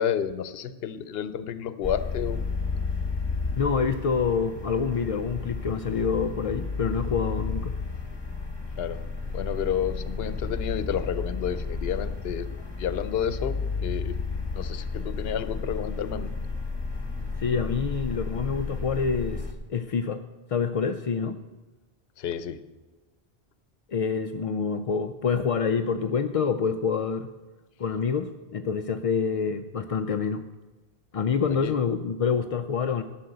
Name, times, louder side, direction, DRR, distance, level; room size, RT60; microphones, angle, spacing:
voice 1, 0.0-2.4 8.8-9.0 9.3-12.5 12.8-14.2 14.5-16.3 22.2-22.6 31.5-31.7, left 9 dB, 75° left, 13 dB, 0.9 m, -30 dB
sound 1, 1.8-19.5, left 4 dB, 25° left, 1.1 m, -32 dB
voice 2, 3.6-7.8 17.4-19.4 19.7-20.2 20.5-21.4 23.9-27.3 27.8-30.4 31.1-33.0, left 6 dB, 55° left, 7 dB, 0.4 m, -27 dB
11.5 x 6.1 x 7.7 m, 1.2 s
omnidirectional pair, 1.0 m